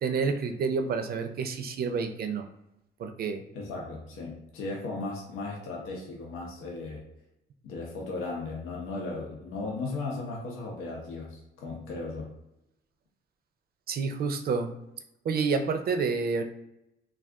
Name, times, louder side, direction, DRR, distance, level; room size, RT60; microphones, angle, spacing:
voice 1, 0.0-2.4 3.0-3.4 13.9-14.7 15.2-16.4, right 5 dB, 50° right, 6 dB, 0.4 m, -29 dB
voice 2, 3.5-7.0 7.6-12.3, left 3 dB, 90° left, -2 dB, 0.7 m, -36 dB
2.3 x 2.3 x 3.5 m, 0.88 s
cardioid pair, 90°, 20 cm